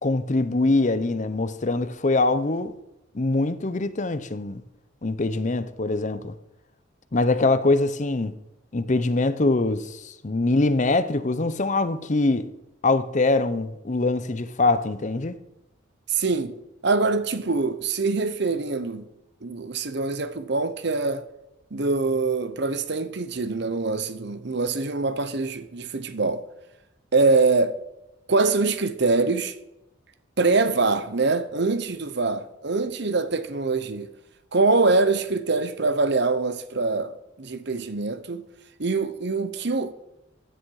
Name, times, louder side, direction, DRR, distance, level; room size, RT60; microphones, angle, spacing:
voice 1, 0.0-2.7 3.1-4.6 5.0-6.3 7.1-8.4 8.7-12.5 12.8-15.4, left 2 dB, 40° left, 0.7 m, -23 dB
voice 2, 16.1-16.5 16.8-19.0 19.4-21.2 21.7-26.4 27.1-27.8 28.3-29.6 30.4-34.1 34.5-38.5 38.8-39.9, right 3 dB, 60° right, 0.9 m, -24 dB
15.5 x 10.0 x 4.8 m
head